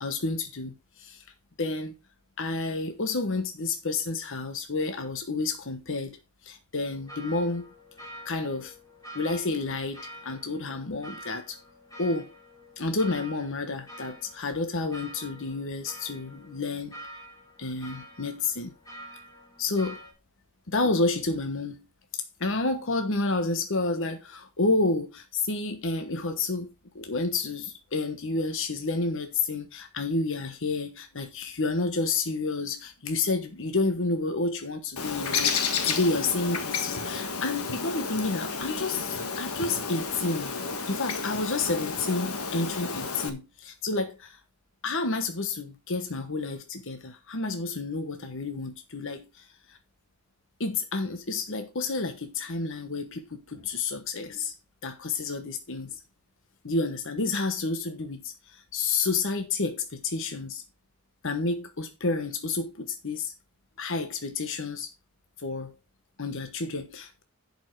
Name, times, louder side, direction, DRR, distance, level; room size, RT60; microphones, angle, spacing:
voice 1, 0.0-1.2 1.6-1.9 2.4-6.2 6.4-7.6 8.2-8.7 9.1-11.6 12.0-12.3 12.8-17.0 17.6-18.7 19.6-20.0 20.7-21.8 22.4-26.7 26.9-40.5 40.9-44.4 44.8-49.8 50.6-54.5 54.8-56.0 56.6-60.6 61.2-63.3 63.8-64.9 65.4-65.7 66.2-67.2, left 3 dB, 60° left, 1.2 m, -30 dB
sound 1, 6.8-20.1, equal, 15° left, 3.1 m, -47 dB
Bird, 35.0-43.3, left 5 dB, 90° left, 1.5 m, -31 dB
11.0 x 5.6 x 4.7 m
head